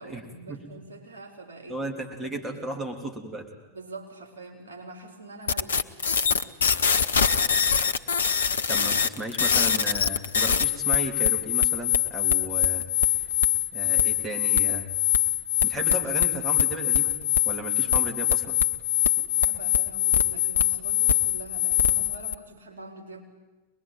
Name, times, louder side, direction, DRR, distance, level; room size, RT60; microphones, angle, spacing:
voice 1, 0.0-1.8 2.2-2.7 3.7-5.9 19.3-23.2, right 2 dB, 65° right, 1 dB, 4.5 m, -44 dB
voice 2, 1.7-3.5 8.7-13.3 13.7-14.9 15.6-17.2 17.4-18.6, right 1 dB, 15° right, 3 dB, 3.2 m, -35 dB
sound 1, 5.5-22.3, left 9 dB, 65° left, 0.9 m, -23 dB
24.0 x 21.0 x 9.3 m, 1.1 s
figure-of-eight pair, 90°, 0 cm